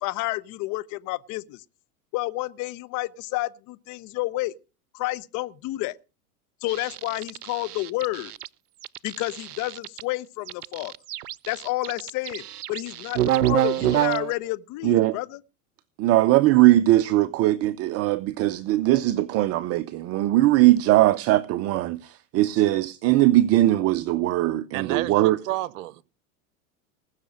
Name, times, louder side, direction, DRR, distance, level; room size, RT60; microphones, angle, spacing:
voice 1, 0.0-1.6 2.1-4.5 4.9-5.9 6.6-8.3 9.0-10.9 11.5-12.4 12.7-15.4, left 19 dB, 40° left, 0.9 m, -30 dB
sound 1, 6.7-8.5 8.8-10.0 10.5-14.3, right 13 dB, 85° right, 0.6 m, -27 dB
voice 2, 14.8-15.2 16.0-25.4, right 15 dB, 35° right, 0.6 m, -20 dB
voice 3, 24.7-26.0, right 16 dB, 60° right, 1.0 m, -31 dB
19.5 x 6.6 x 6.3 m
hypercardioid pair, 95°, 45 cm